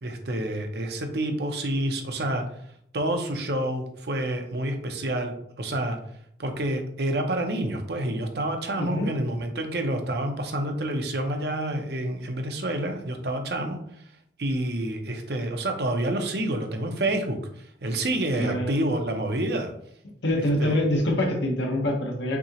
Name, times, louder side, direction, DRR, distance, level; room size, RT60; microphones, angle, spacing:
voice 1, 0.0-2.5 2.9-6.0 6.4-13.8 14.4-19.7 20.3-20.8, right 1 dB, 65° right, 5 dB, 0.7 m, -28 dB
voice 2, 8.8-9.1 18.4-18.7 20.2-22.4, left 1 dB, 85° left, 1 dB, 1.1 m, -25 dB
5.9 x 2.9 x 2.9 m, 0.69 s
head